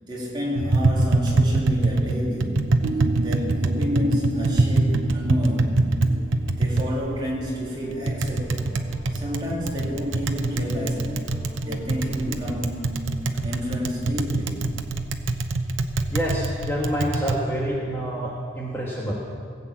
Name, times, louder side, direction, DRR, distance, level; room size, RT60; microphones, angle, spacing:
voice 1, 0.0-2.6 3.2-5.9 6.6-8.8 9.1-11.2 11.6-13.0 13.4-14.7, left 1 dB, 25° right, -5 dB, 3.0 m, -30 dB
Tap, 0.6-17.4, right 2 dB, 85° right, 0.8 m, -24 dB
sound 1, 2.8-6.9, right 2 dB, 55° right, 0.5 m, -33 dB
sound 2, 4.2-12.9, equal, 40° left, 4.9 m, -44 dB
voice 2, 16.1-19.1, equal, 10° left, -5 dB, 1.5 m, -27 dB
17.5 x 8.1 x 7.4 m, 2.3 s
head